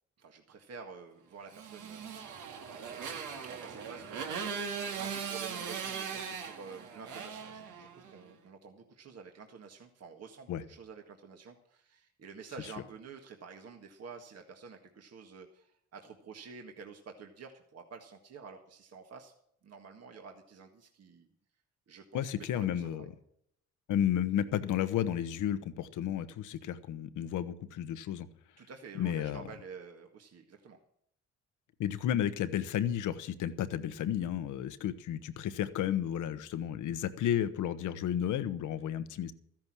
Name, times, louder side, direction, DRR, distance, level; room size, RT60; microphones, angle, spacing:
voice 1, 0.2-4.4 5.0-19.3 19.6-21.3 21.9-22.3 22.5-23.1 28.6-30.8, right 5 dB, 55° right, 3 dB, 1.8 m, -50 dB
Motorcycle, 1.5-8.2, right 6 dB, 85° right, 2.2 m, -39 dB
voice 2, 22.1-23.1 23.9-28.3 29.0-29.4 31.8-39.3, left 10 dB, 85° left, 12 dB, 1.1 m, -32 dB
13.5 x 10.5 x 6.2 m, 0.70 s
cardioid pair, 90°, 30 cm